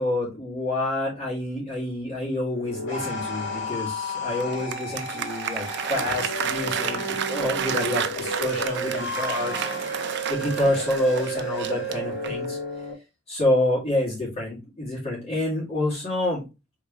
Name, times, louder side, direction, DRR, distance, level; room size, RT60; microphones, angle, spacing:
voice 1, 0.0-9.6 10.3-12.6 13.3-16.4, left 1 dB, 30° left, -5 dB, 2.0 m, -27 dB
sound 1, 2.5-12.9, equal, 60° left, 1.6 m, -32 dB
Applause, 4.4-12.5, right 8 dB, 55° right, 0.4 m, -31 dB
4.7 x 3.1 x 2.9 m, 0.27 s
head